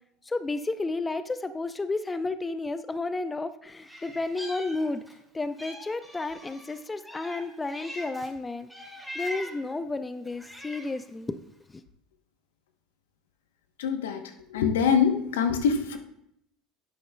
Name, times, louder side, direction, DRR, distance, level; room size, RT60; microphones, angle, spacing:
voice 1, 0.3-5.0 5.3-11.4 11.7-11.8, left 3 dB, 20° left, 12 dB, 0.5 m, -32 dB
Meow, 3.8-5.2 5.6-8.3 8.7-9.7 10.2-11.1, equal, ahead, 2.2 m, -42 dB
voice 2, 13.8-14.2 14.5-16.0, left 7 dB, 80° left, 7 dB, 0.9 m, -24 dB
10.0 x 8.1 x 2.2 m, 0.76 s
hypercardioid pair, 80°, 0 cm